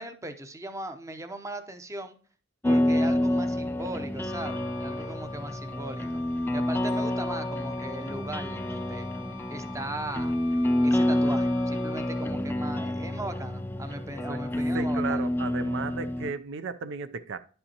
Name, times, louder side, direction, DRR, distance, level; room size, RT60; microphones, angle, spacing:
voice 1, 0.0-2.2 2.6-6.2 6.5-9.1 9.5-10.3 10.8-15.3, right 2 dB, 15° right, 0.7 m, -38 dB
sound 1, 2.6-16.3, left 1 dB, 10° left, 0.3 m, -28 dB
Wind instrument woodwind instrument, 4.2-12.6, left 5 dB, 65° left, 0.5 m, -46 dB
voice 2, 14.7-17.4, right 4 dB, 65° right, 0.5 m, -34 dB
10.5 x 5.5 x 2.8 m
head